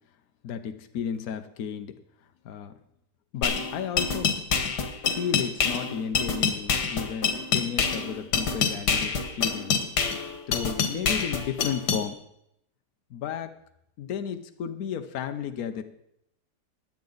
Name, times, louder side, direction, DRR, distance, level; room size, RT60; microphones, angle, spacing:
voice 1, 0.4-1.9 2.4-2.7 3.3-4.4 5.1-9.8 10.5-12.1 13.1-13.5 14.0-15.8, left 8 dB, 65° left, 8 dB, 1.2 m, -33 dB
sound 1, 3.4-12.0, left 6 dB, 80° left, 1.9 m, -26 dB
16.5 x 10.5 x 4.0 m, 0.78 s
omnidirectional pair, 1.7 m